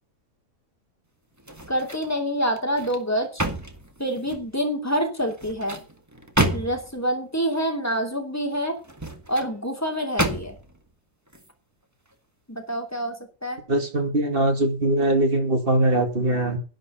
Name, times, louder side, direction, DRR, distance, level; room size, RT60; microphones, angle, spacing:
sound 1, 1.4-2.1 2.6-4.5 5.3-7.0 8.8-9.5 10.2-10.8 11.3-11.5, right 1 dB, 10° right, 1.4 m, -29 dB
voice 1, 1.7-3.4 4.0-5.8 6.5-8.8 9.3-10.6 12.5-13.6, equal, 10° left, 4 dB, 2.8 m, -27 dB
voice 2, 13.7-16.6, right 1 dB, 35° right, 6 dB, 2.4 m, -21 dB
11.0 x 10.5 x 5.7 m, 0.34 s
omnidirectional pair, 1.7 m